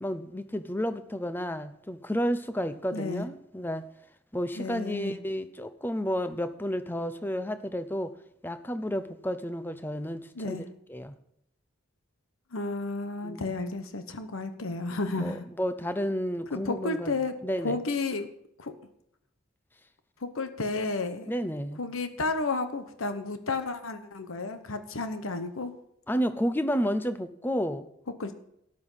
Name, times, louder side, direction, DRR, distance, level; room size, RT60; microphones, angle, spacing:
voice 1, 0.0-3.9 4.3-8.1 8.4-10.6 10.9-11.1 13.2-13.5 15.2-17.2 17.4-17.8 21.3-21.8 26.1-27.9, equal, 10° left, 11 dB, 0.6 m, -31 dB
voice 2, 2.9-3.3 4.6-5.2 10.3-10.6 12.5-15.5 16.5-17.3 17.6-18.3 18.6-18.7 20.2-21.3 21.8-25.7 28.2-28.4, left 3 dB, 80° left, 9 dB, 1.1 m, -32 dB
13.0 x 10.5 x 5.6 m, 0.74 s
head